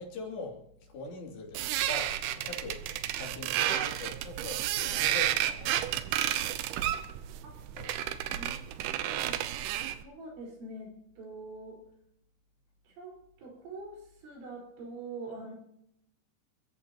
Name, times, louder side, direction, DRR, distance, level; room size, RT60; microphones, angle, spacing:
voice 1, 0.0-2.8 3.2-6.4 7.7-8.3, left 3 dB, 65° left, 0 dB, 5.0 m, -43 dB
sound 1, 1.5-10.0, right 12 dB, 90° right, 2.2 m, -31 dB
voice 2, 8.3-9.4 10.0-11.8 12.9-15.6, right 2 dB, 70° right, -2 dB, 7.3 m, -44 dB
28.5 x 15.0 x 3.0 m, 0.71 s
omnidirectional pair, 5.5 m